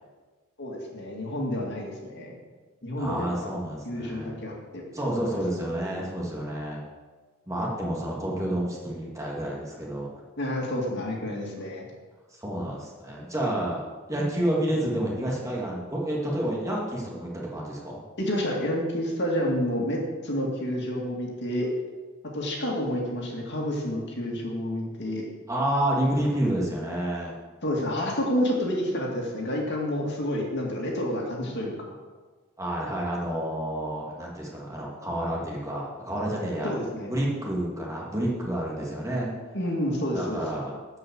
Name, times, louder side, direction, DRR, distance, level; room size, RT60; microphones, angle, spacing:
voice 1, 0.6-2.3 2.8-3.5 3.8-4.8 10.4-11.9 18.2-21.7 22.2-25.2 27.6-32.0 36.6-37.1 39.5-40.4, equal, 50° left, -1 dB, 2.3 m, -29 dB
voice 2, 3.0-4.4 4.9-6.8 7.5-10.1 12.3-13.8 14.1-18.0 25.5-27.3 32.6-36.7 37.0-39.3 40.1-40.8, right 1 dB, 15° right, -4 dB, 2.4 m, -29 dB
12.0 x 5.6 x 7.8 m, 1.4 s
head